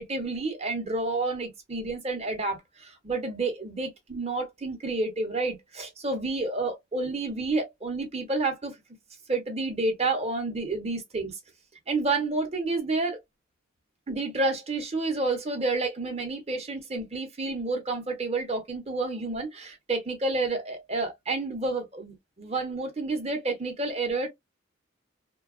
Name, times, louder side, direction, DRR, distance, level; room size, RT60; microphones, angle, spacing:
voice 1, 0.0-8.8 9.3-11.4 11.9-13.2 14.1-24.3, right 3 dB, 30° right, 0.8 m, -30 dB
2.8 x 2.2 x 2.3 m
head